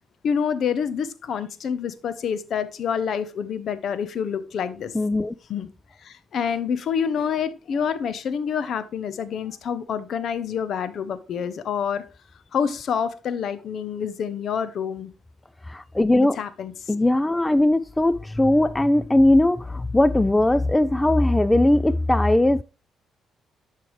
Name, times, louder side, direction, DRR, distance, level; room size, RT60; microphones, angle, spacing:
voice 1, 0.2-4.9 5.5-5.7 6.0-12.1 12.5-15.1 16.4-16.9, left 7 dB, 65° left, 0.7 m, -27 dB
voice 2, 4.9-5.3 15.7-16.4 16.9-22.6, left 1 dB, 10° left, 0.3 m, -19 dB
11.0 x 4.7 x 3.2 m
cardioid pair, 90°, 0 cm